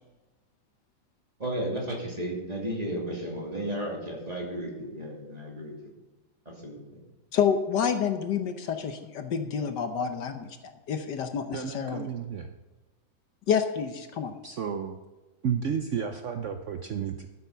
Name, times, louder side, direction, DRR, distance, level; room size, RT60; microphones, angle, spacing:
voice 1, 1.4-5.7 6.4-7.0, right 1 dB, 20° right, -2 dB, 2.7 m, -34 dB
voice 2, 7.3-12.1 13.5-14.3, left 7 dB, 65° left, 8 dB, 1.4 m, -28 dB
voice 3, 11.5-12.5 14.4-15.0 15.4-17.3, right 7 dB, 75° right, 7 dB, 0.6 m, -32 dB
13.0 x 8.2 x 5.6 m, 1.2 s
omnidirectional pair, 2.1 m